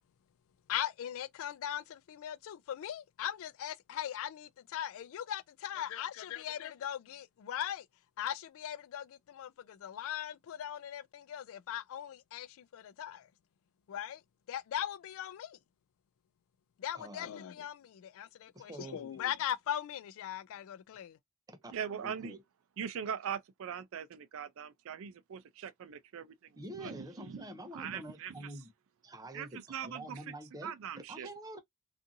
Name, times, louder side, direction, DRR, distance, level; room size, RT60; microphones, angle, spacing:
voice 1, 0.7-7.9 8.2-13.3 13.9-14.2 14.5-15.6 16.8-21.2, left 10 dB, 65° left, 0.3 m, -39 dB
voice 2, 16.9-17.4 18.5-19.2 21.5-22.4 26.6-28.7 29.0-31.6, right 1 dB, 15° right, 0.5 m, -47 dB
voice 3, 21.7-22.4 22.8-27.4 27.7-28.5 29.3-30.2 30.6-31.3, right 8 dB, 65° right, 0.4 m, -41 dB
2.6 x 2.4 x 2.6 m
head